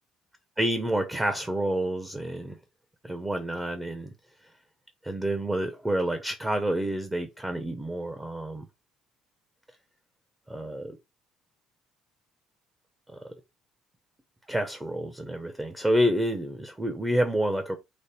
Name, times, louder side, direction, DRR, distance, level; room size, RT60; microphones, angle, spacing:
voice 1, 0.6-2.6 3.0-4.1 5.0-8.7 10.5-11.0 14.5-17.8, right 1 dB, 10° right, 0.6 m, -28 dB
5.1 x 2.0 x 4.2 m
cardioid pair, 135°, 0 cm